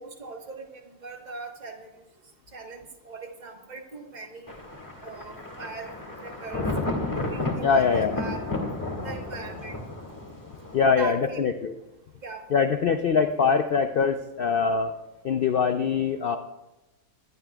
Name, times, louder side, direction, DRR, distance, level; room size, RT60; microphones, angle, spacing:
voice 1, 0.0-2.1 2.5-2.8 3.0-4.6 5.0-5.9 6.2-6.7 7.1-8.5 9.0-9.8 11.0-11.4 12.2-12.5, right 4 dB, 30° right, 3 dB, 1.3 m, -40 dB
Thunder, 4.5-10.9, left 2 dB, 10° left, 2.0 m, -32 dB
voice 2, 7.6-8.2 10.7-11.7 12.5-14.9 15.2-16.4, left 5 dB, 80° left, 7 dB, 0.5 m, -23 dB
19.5 x 12.0 x 2.3 m, 0.98 s
omnidirectional pair, 1.6 m